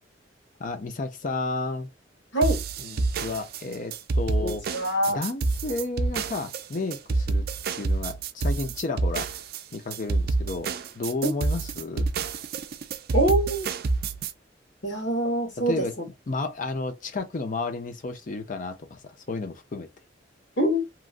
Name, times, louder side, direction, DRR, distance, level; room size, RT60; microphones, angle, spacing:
voice 1, 0.6-1.9 2.8-4.7 5.1-7.4 7.7-9.3 9.7-12.1 15.7-15.9 16.3-19.9, left 3 dB, 45° left, 0.5 m, -32 dB
sound 1, 2.4-14.3, right 3 dB, 55° right, 0.4 m, -28 dB
voice 2, 4.4-5.2 13.1-13.7 14.8-15.8 20.6-20.8, right 1 dB, 70° left, 1.6 m, -24 dB
3.0 x 2.4 x 2.4 m
head